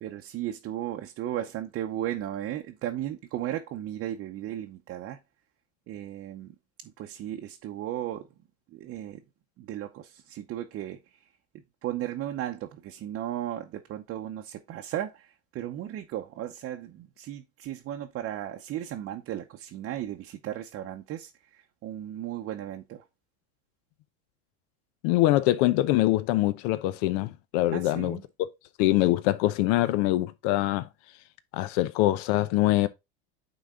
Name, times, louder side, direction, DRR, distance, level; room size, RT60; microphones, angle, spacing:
voice 1, 0.0-5.2 5.9-6.5 6.8-8.3 8.7-9.2 9.6-11.2 11.8-23.0 27.7-28.2, right 12 dB, 40° right, 0.8 m, -35 dB
voice 2, 25.0-28.5 28.8-30.9 31.5-32.9, left 16 dB, 70° left, 0.8 m, -24 dB
9.1 x 3.9 x 3.7 m
supercardioid pair, 135°, 34 cm